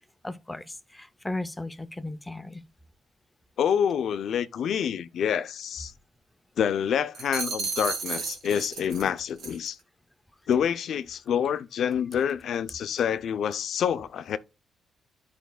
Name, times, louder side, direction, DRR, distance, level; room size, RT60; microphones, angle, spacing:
voice 1, 0.2-2.6, left 2 dB, 10° left, 0.5 m, -36 dB
voice 2, 3.6-5.9 6.6-9.8 10.5-14.4, left 8 dB, 70° left, 0.5 m, -27 dB
sound 1, 7.1-9.1 9.4-9.7, right 5 dB, 75° right, 1.8 m, -33 dB
12.5 x 5.1 x 2.2 m
cardioid pair, 130°, 0 cm